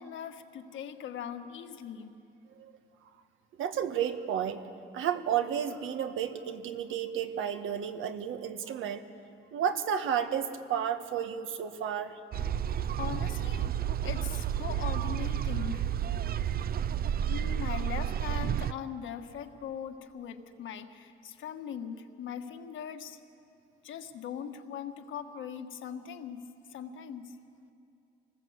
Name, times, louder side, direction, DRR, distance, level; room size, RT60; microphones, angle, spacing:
voice 1, 0.0-2.1 13.0-15.9 17.3-23.2 23.8-27.3, left 8 dB, 75° left, 6 dB, 1.7 m, -40 dB
voice 2, 3.6-4.7 4.9-9.0 9.5-12.2, right 9 dB, 85° right, 8 dB, 1.5 m, -32 dB
sound 1, 12.3-18.7, right 10 dB, 50° right, 0.6 m, -31 dB
26.5 x 19.5 x 8.1 m, 2.6 s
cardioid pair, 90°, 20 cm